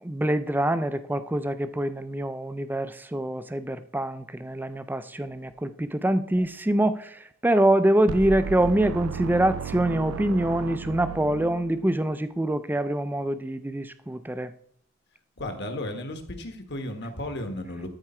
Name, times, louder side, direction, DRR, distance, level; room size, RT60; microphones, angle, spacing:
voice 1, 0.0-14.5, right 1 dB, 10° right, 12 dB, 0.4 m, -25 dB
sound 1, 8.1-12.1, right 6 dB, 80° right, 0.3 m, -35 dB
voice 2, 15.4-17.9, left 1 dB, 55° left, 6 dB, 1.4 m, -34 dB
13.0 x 4.7 x 4.3 m, 0.62 s
head